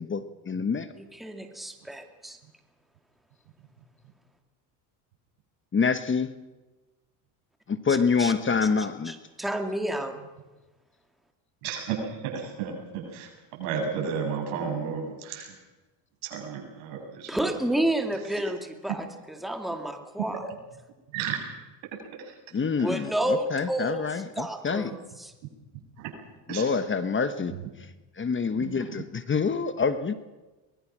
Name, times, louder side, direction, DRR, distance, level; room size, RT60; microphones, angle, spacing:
voice 1, 0.0-0.9 5.7-6.3 7.7-9.2 22.5-24.9 26.5-27.5 28.2-30.1, left 5 dB, 25° left, 11 dB, 1.2 m, -26 dB
voice 2, 1.0-2.4 8.2-8.3 9.0-10.2 17.3-20.4 22.8-25.3, right 1 dB, ahead, 4 dB, 2.3 m, -30 dB
voice 3, 11.6-15.5 16.2-17.3 21.1-21.4 22.2-22.3 26.0-26.1 26.5-26.7 28.6-28.9, right 6 dB, 80° right, 1 dB, 7.6 m, -33 dB
23.5 x 21.0 x 6.2 m, 1.2 s
supercardioid pair, 100°, 48 cm